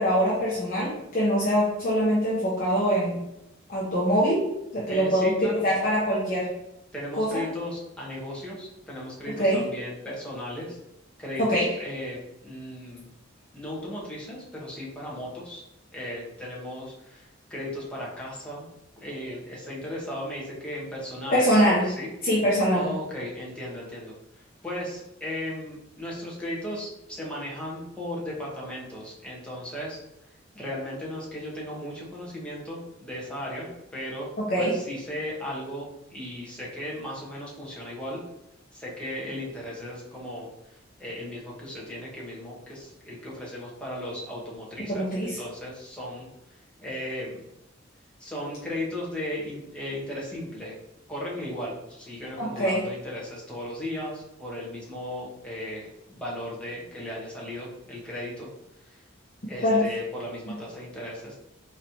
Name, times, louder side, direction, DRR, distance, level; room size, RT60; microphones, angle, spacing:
voice 1, 0.0-3.2 3.7-4.4 4.7-5.3 5.6-6.5 7.2-7.4 9.4-9.6 11.4-11.7 21.3-21.9 22.2-22.8 34.4-34.7 44.9-45.4 52.4-52.8 59.6-59.8, equal, 45° left, -7 dB, 0.9 m, -23 dB
voice 2, 4.9-5.7 6.9-10.8 11.2-13.1 13.5-15.6 15.9-18.7 19.0-21.6 21.8-22.1 22.7-30.0 30.5-38.2 38.7-46.3 46.8-47.4 48.2-50.8 51.1-58.5 58.9-59.0 59.5-61.3, left 1 dB, 5° left, -5 dB, 1.0 m, -36 dB
4.0 x 3.0 x 2.8 m, 0.87 s
head